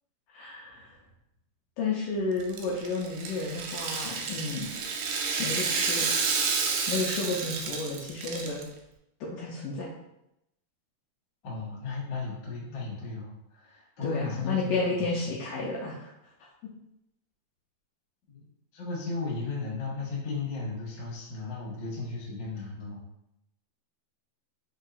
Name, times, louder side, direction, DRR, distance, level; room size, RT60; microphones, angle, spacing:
voice 1, 0.3-0.9 1.8-4.7 5.4-6.1 6.9-8.6 9.2-9.9 14.0-16.1, left 3 dB, 85° left, -4 dB, 1.9 m, -31 dB
Rattle (instrument), 2.4-8.6, right 5 dB, 85° right, 1.9 m, -30 dB
voice 2, 11.4-15.1 18.3-18.4 18.7-23.0, left 4 dB, 65° left, -6 dB, 1.1 m, -35 dB
5.5 x 2.8 x 2.5 m, 0.83 s
omnidirectional pair, 4.2 m